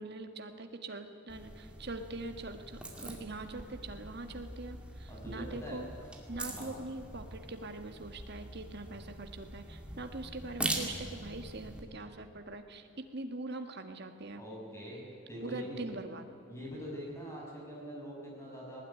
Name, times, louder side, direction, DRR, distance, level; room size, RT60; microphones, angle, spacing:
voice 1, 0.0-5.9 6.3-14.4 15.4-16.2, right 2 dB, 50° right, 6 dB, 1.7 m, -43 dB
sound 1, 1.3-11.8, right 1 dB, 5° right, 2.2 m, -43 dB
voice 2, 5.1-5.8 6.5-6.8 14.4-15.0 15.3-15.9 16.5-18.8, equal, 10° left, -3 dB, 6.5 m, -43 dB
19.5 x 19.0 x 9.9 m, 2.7 s
head